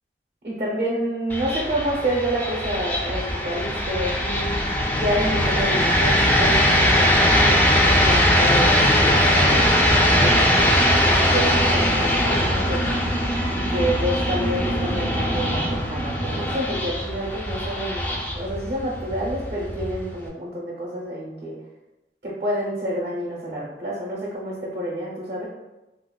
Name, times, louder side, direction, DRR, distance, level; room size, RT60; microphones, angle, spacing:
voice 1, 0.4-9.7 10.2-21.6 22.2-25.5, equal, 50° right, -4 dB, 0.6 m, -28 dB
sound 1, 1.3-20.3, equal, 10° left, 0.3 m, -21 dB
3.9 x 2.1 x 2.2 m, 1.0 s
head